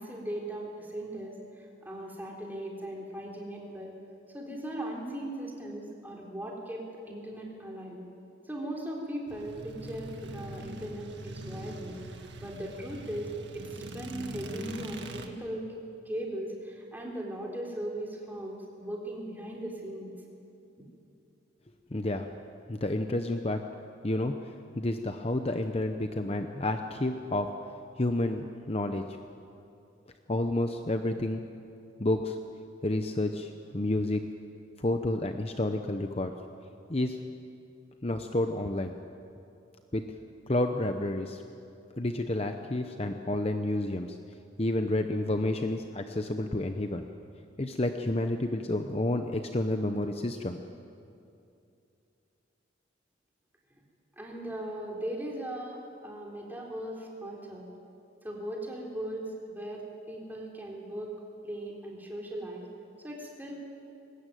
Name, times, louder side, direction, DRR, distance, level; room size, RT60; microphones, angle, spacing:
voice 1, 0.0-3.9 4.3-8.0 8.4-15.7 16.1-20.1 54.2-57.7 58.2-61.1 61.4-62.7 63.0-63.5, right 1 dB, 10° right, -2 dB, 3.7 m, -38 dB
sound 1, 9.3-15.3, right 1 dB, 60° right, 1.9 m, -42 dB
voice 2, 21.9-22.3 22.7-23.7 24.0-27.5 28.0-29.1 30.3-31.4 32.0-32.4 32.8-34.2 34.8-36.3 36.9-37.2 38.0-38.9 39.9-40.0 40.5-41.4 42.0-44.2 44.6-47.0 47.6-50.6, left 1 dB, 30° left, 6 dB, 0.8 m, -30 dB
21.5 x 19.5 x 9.2 m, 2.7 s
head